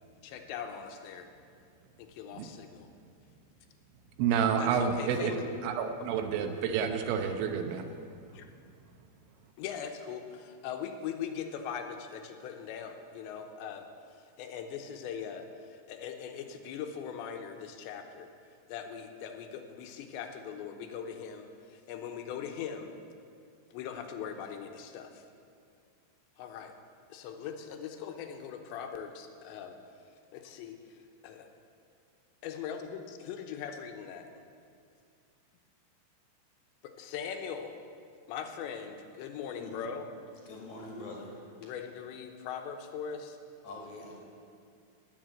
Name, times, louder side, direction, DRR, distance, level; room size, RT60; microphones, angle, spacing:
voice 1, 0.2-1.3 2.0-2.9 4.6-5.5 8.3-8.5 9.6-13.9 14.4-18.3 18.7-22.9 23.7-25.2 26.4-26.7 27.1-29.7 30.3-30.8 31.2-31.5 32.4-34.3 37.0-37.7 38.3-40.1 41.6-43.4, left 7 dB, 80° left, 5 dB, 3.1 m, -40 dB
voice 2, 4.2-5.3 5.6-7.9, right 7 dB, 90° right, 6 dB, 3.4 m, -29 dB
voice 3, 40.5-41.4 43.6-44.2, left 2 dB, 50° left, -2 dB, 2.7 m, -44 dB
18.5 x 7.3 x 7.7 m, 2.3 s
omnidirectional pair, 5.2 m